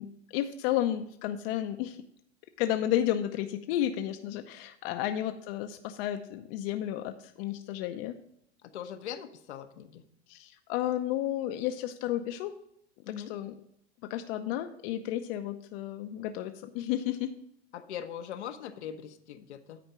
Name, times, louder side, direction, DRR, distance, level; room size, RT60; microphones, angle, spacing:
voice 1, 0.0-2.0 2.6-8.2 10.3-12.5 13.1-13.5 14.1-17.3, left 12 dB, 60° left, 7 dB, 0.8 m, -32 dB
voice 2, 8.6-10.0 13.0-13.3 17.7-19.8, left 9 dB, 85° left, 6 dB, 1.0 m, -41 dB
9.9 x 4.3 x 6.1 m, 0.71 s
hypercardioid pair, 105°, 33 cm